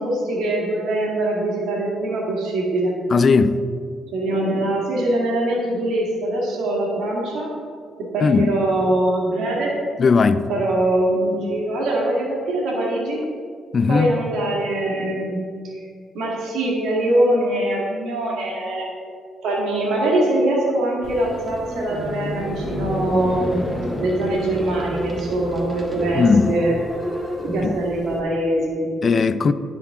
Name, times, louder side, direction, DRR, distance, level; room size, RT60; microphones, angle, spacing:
voice 1, 0.0-3.0 4.1-7.5 8.1-9.7 10.5-13.2 13.9-15.4 16.1-18.9 19.4-23.6 24.0-26.7 27.4-28.9, right 1 dB, 80° right, 2.0 m, -22 dB
voice 2, 3.1-3.6 8.2-8.6 10.0-10.4 13.7-14.2 26.1-26.6 27.6-27.8 29.0-29.5, left 4 dB, 45° left, 0.4 m, -17 dB
sound 1, 21.0-28.2, equal, 5° right, 1.5 m, -30 dB
10.0 x 7.5 x 3.7 m
cardioid pair, 90°, 0 cm